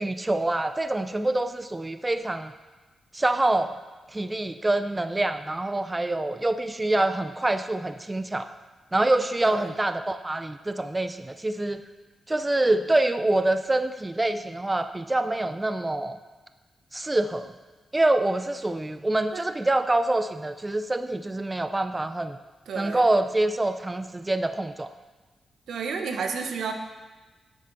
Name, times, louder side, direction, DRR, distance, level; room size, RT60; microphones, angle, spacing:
voice 1, 0.0-2.5 3.1-3.7 4.1-8.5 8.9-11.8 12.3-16.2 16.9-17.5 17.9-22.4 22.8-24.9, right 2 dB, 25° right, 10 dB, 0.5 m, -25 dB
voice 2, 22.7-23.0 25.7-26.7, right 5 dB, 80° right, 5 dB, 0.8 m, -31 dB
10.0 x 8.1 x 3.9 m, 1.3 s
supercardioid pair, 45°, 0 cm